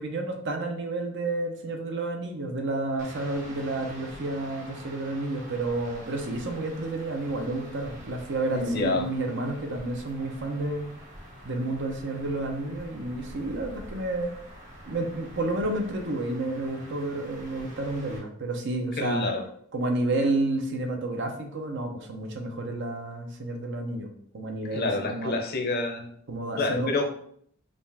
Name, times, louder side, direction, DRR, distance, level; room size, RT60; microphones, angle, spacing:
voice 1, 0.0-10.9 11.4-14.3 14.9-19.3 19.7-25.3 26.3-26.9, right 2 dB, 55° right, 3 dB, 0.7 m, -30 dB
sound 1, 3.0-18.2, equal, 40° right, 1.3 m, -46 dB
voice 2, 8.5-9.0 19.0-19.4 24.7-26.1 26.6-27.1, left 3 dB, 45° left, 3 dB, 0.7 m, -28 dB
5.0 x 2.4 x 3.4 m, 0.66 s
head